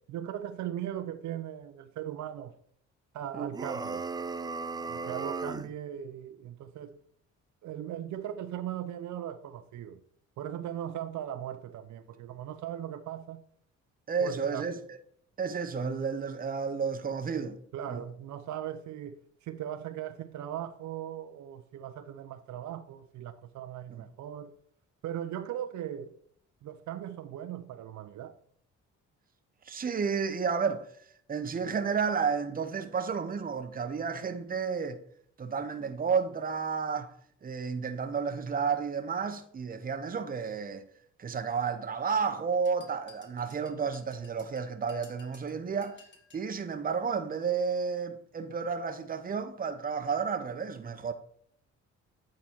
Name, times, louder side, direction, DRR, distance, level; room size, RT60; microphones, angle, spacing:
voice 1, 0.1-2.5 3.1-4.1 4.9-7.0 7.6-10.0 10.4-13.4 14.2-14.6 17.7-24.5 25.0-26.2 26.6-28.3, right 10 dB, 70° right, 0.6 m, -39 dB
sound 1, 3.5-5.7, right 4 dB, 15° right, 0.3 m, -35 dB
voice 2, 14.1-14.8 15.4-17.6 17.9-18.0 23.9-24.0 29.7-30.9 31.3-35.0 35.4-37.1 37.4-40.8 41.2-46.0 46.3-51.1, right 6 dB, 30° right, 0.7 m, -31 dB
sound 2, 42.6-46.5, left 4 dB, 40° left, 1.9 m, -57 dB
8.6 x 3.8 x 4.5 m
cardioid pair, 90°, 30 cm